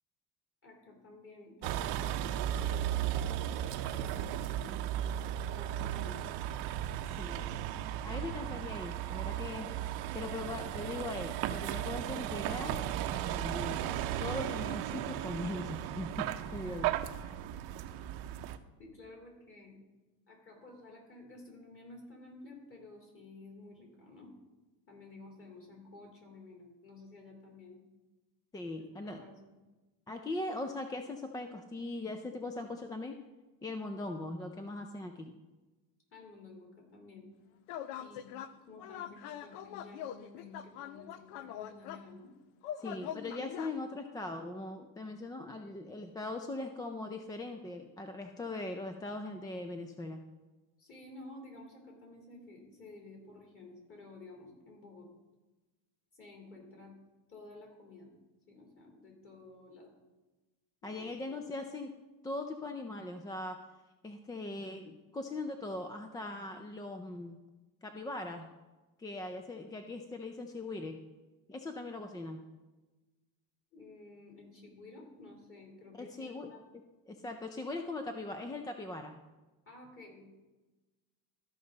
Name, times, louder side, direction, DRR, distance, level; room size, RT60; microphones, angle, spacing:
voice 1, 0.6-4.8 5.5-6.2 7.0-7.2 18.7-19.8 20.3-24.3 24.9-27.8 28.8-29.3 36.1-37.3 38.0-42.3 50.8-55.1 56.1-56.9 57.3-58.1 58.5-59.9 60.8-61.3 73.7-76.6 79.6-80.4, left 2 dB, 30° left, -1 dB, 3.5 m, -53 dB
Vehicle, 1.6-18.6, right 11 dB, 60° right, 0.7 m, -36 dB
voice 2, 7.2-7.7 8.0-9.7 10.1-12.8 13.1-16.9 17.2-17.3 28.5-29.2 30.1-33.2 33.6-35.3 42.8-50.2 60.8-61.9 62.2-63.6 64.0-67.4 67.8-68.5 69.0-71.0 71.5-72.4 76.0-76.5 77.1-79.2, left 2 dB, 10° left, 6 dB, 0.3 m, -40 dB
sound 1, 37.7-38.5 38.8-42.1 42.6-43.8, left 10 dB, 80° left, 0.7 m, -43 dB
14.0 x 5.3 x 3.9 m, 1.2 s
supercardioid pair, 115°, 45 cm